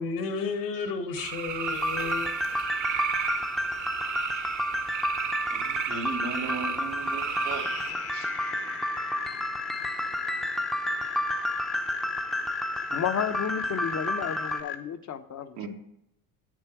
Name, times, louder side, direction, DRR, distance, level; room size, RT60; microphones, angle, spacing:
voice 1, 0.0-2.3, left 4 dB, 70° left, 6 dB, 2.0 m, -32 dB
sound 1, 1.2-7.9, right 8 dB, 40° right, 1.0 m, -34 dB
sound 2, 1.6-14.6, equal, ahead, 0.7 m, -31 dB
voice 2, 5.5-7.6 8.1-8.3 15.6-15.7, right 4 dB, 85° right, 1 dB, 1.8 m, -36 dB
sound 3, 7.0-14.8, left 9 dB, 55° left, 1.2 m, -37 dB
voice 3, 12.9-15.6, left 8 dB, 40° left, 9 dB, 0.9 m, -32 dB
8.7 x 7.4 x 4.6 m, 0.77 s
hypercardioid pair, 75°, 44 cm